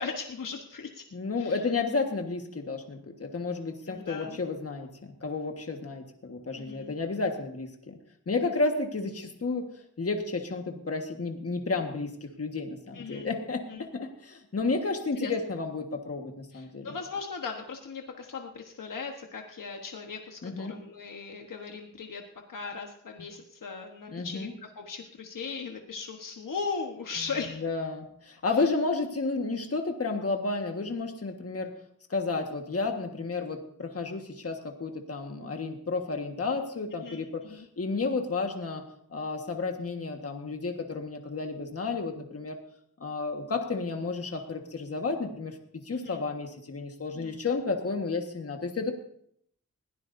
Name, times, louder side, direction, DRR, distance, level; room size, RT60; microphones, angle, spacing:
voice 1, 0.0-1.0 1.4-1.6 3.9-4.4 6.5-6.9 12.9-13.3 13.7-13.9 15.2-15.3 16.5-22.2 22.5-27.7 28.5-28.7 37.0-37.7 45.9-46.2 47.1-47.4, left 5 dB, 90° left, 2 dB, 1.3 m, -38 dB
voice 2, 1.1-8.0 8.3-9.7 10.0-16.9 20.4-20.7 24.1-24.5 27.6-31.7 32.1-38.8 39.1-42.6 43.0-48.9, left 3 dB, 50° left, 3 dB, 1.6 m, -32 dB
21.0 x 16.5 x 2.7 m, 0.69 s
wide cardioid pair, 115°, 31 cm